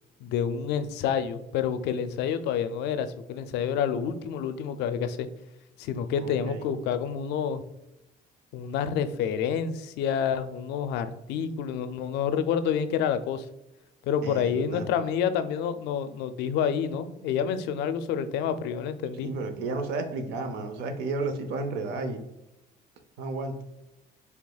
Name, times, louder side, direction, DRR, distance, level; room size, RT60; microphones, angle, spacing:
voice 1, 0.2-5.3 5.8-7.6 8.5-13.5 14.0-19.3, left 8 dB, 85° left, 11 dB, 0.4 m, -28 dB
voice 2, 6.2-6.6 14.2-14.9 19.2-22.2 23.2-23.5, right 3 dB, 90° right, 7 dB, 0.6 m, -32 dB
4.8 x 3.3 x 2.3 m, 0.93 s
cardioid pair, 110°, 17 cm